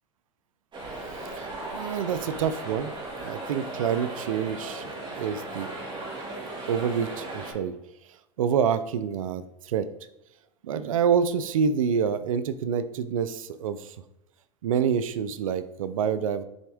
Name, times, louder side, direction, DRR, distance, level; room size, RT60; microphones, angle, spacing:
sound 1, 0.7-7.5, right 2 dB, 30° right, 2.2 m, -37 dB
voice 1, 1.2-5.8 6.7-7.7 8.4-9.9 10.6-14.0 14.6-16.4, right 7 dB, 85° right, 13 dB, 0.5 m, -27 dB
6.3 x 4.3 x 3.5 m, 0.90 s
hypercardioid pair, 105°, 17 cm